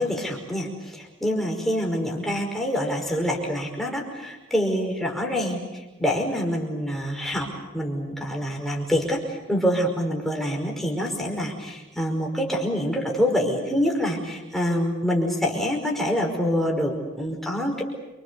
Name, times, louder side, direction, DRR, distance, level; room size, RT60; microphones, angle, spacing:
voice 1, 0.0-17.8, equal, ahead, 0 dB, 5.2 m, -26 dB
29.0 x 26.0 x 7.0 m, 1.1 s
head